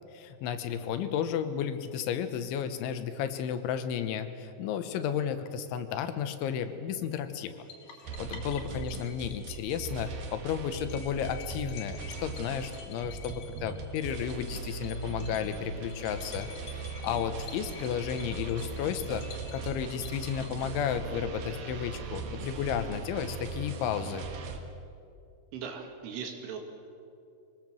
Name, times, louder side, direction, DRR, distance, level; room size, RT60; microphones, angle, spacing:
voice 1, 0.1-7.7 8.2-19.2 19.5-24.3, left 8 dB, 80° left, 9 dB, 3.4 m, -33 dB
sound 1, 7.7-21.1, left 6 dB, 50° left, 3.3 m, -50 dB
sound 2, 8.1-24.6, right 4 dB, 60° right, 2.9 m, -39 dB
voice 2, 25.5-26.6, right 6 dB, 80° right, 3 dB, 4.6 m, -39 dB
24.0 x 19.5 x 7.7 m, 2.6 s
omnidirectional pair, 5.5 m